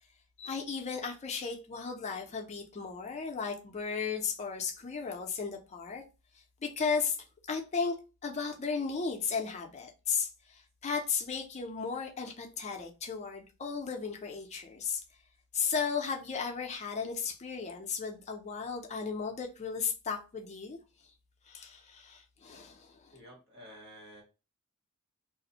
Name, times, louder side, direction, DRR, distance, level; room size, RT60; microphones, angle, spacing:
voice 1, 0.4-6.0 6.6-7.2 7.5-7.9 8.2-15.0 15.5-20.8 21.5-23.2, left 5 dB, 30° left, 0.4 m, -35 dB
voice 2, 23.1-24.2, equal, 50° right, 1.3 m, -51 dB
2.4 x 2.0 x 2.7 m
head